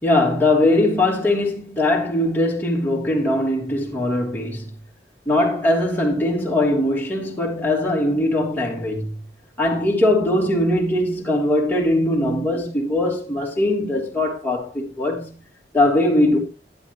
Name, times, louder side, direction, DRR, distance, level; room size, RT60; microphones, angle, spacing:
voice 1, 0.0-4.7 5.2-9.1 9.6-15.3 15.7-16.4, left 1 dB, 10° left, 3.1 m, -20 dB
12.0 x 11.0 x 3.0 m
head